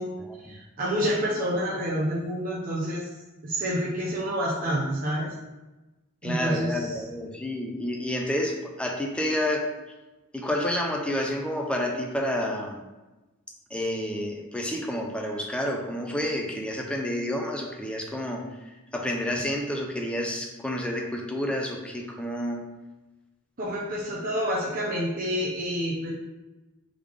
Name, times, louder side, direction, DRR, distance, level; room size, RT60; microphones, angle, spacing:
voice 1, 0.4-3.1 3.4-5.3 6.2-7.0 23.6-26.1, equal, 40° right, -6 dB, 0.7 m, -28 dB
voice 2, 6.2-9.7 10.3-12.8 13.7-22.6, left 1 dB, 5° left, 1 dB, 0.5 m, -29 dB
3.7 x 3.3 x 3.4 m, 1.1 s
head